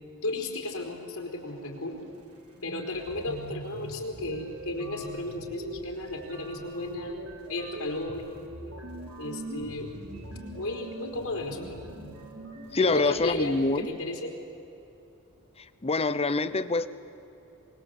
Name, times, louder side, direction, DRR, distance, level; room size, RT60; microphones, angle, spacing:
voice 1, 0.2-2.0 2.6-7.2 7.5-8.5 9.2-9.9 10.5-11.8 12.8-14.3, left 2 dB, 75° left, 1 dB, 4.3 m, -34 dB
sound 1, 2.2-2.3 2.5-13.8, right 1 dB, 80° right, 3.9 m, -42 dB
voice 2, 12.7-13.9 15.6-16.9, left 3 dB, 30° left, 13 dB, 0.8 m, -26 dB
24.5 x 22.0 x 8.3 m, 2.9 s
head